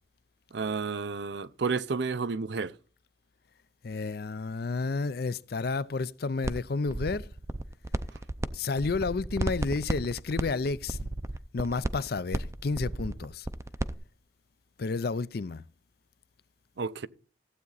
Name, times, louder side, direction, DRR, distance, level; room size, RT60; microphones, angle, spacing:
voice 1, 0.5-2.7 16.8-17.1, right 4 dB, 65° right, 0.6 m, -31 dB
voice 2, 3.8-7.3 8.5-11.0 11.5-13.5 14.8-15.6, left 4 dB, 50° left, 0.5 m, -31 dB
sound 1, 6.4-6.6 6.9-8.5 8.7-13.9, right 1 dB, 15° right, 0.5 m, -33 dB
15.0 x 8.4 x 4.0 m
head